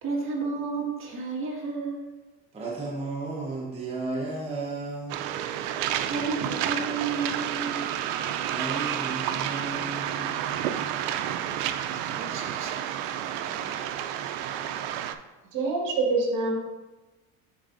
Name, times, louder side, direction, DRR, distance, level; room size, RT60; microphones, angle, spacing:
voice 1, 0.0-2.1 6.0-7.8 11.9-12.9, right 4 dB, 35° right, -2 dB, 1.6 m, -32 dB
voice 2, 2.5-5.2 8.5-10.9 13.4-13.9 14.1-14.2, right 3 dB, 15° right, -5 dB, 1.0 m, -34 dB
Waves surf, 5.1-15.1, right 10 dB, 90° right, 0.5 m, -30 dB
voice 3, 15.5-16.6, right 3 dB, 60° right, -1 dB, 1.8 m, -25 dB
9.6 x 4.0 x 2.5 m, 1.1 s
cardioid pair, 130°, 37 cm